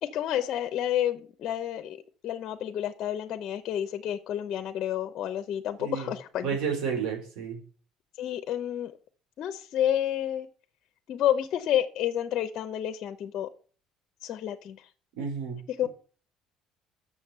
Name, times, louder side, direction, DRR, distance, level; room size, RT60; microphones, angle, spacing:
voice 1, 0.0-2.0 2.2-6.5 8.2-8.9 9.4-10.5 11.1-13.5 14.2-14.9 15.8-15.9, left 11 dB, 55° left, 8 dB, 0.7 m, -30 dB
voice 2, 5.8-6.1 6.4-7.6 15.2-15.6, right 6 dB, 85° right, 2 dB, 4.2 m, -31 dB
7.1 x 6.6 x 6.9 m, 0.41 s
cardioid pair, 125°, 0 cm